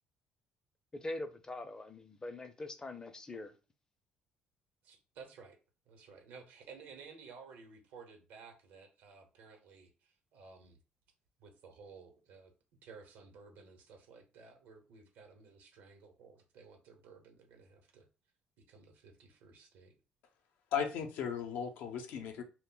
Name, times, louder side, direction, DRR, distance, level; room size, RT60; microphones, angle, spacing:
voice 1, 0.9-3.5, left 2 dB, 20° left, 0.5 m, -43 dB
voice 2, 4.8-5.6 5.9-10.8 11.4-12.5 12.8-18.1 18.7-19.9, right 5 dB, 80° right, 0.8 m, -55 dB
voice 3, 20.7-22.4, left 7 dB, 75° left, 0.5 m, -36 dB
2.1 x 2.1 x 3.7 m
supercardioid pair, 80°, 3 cm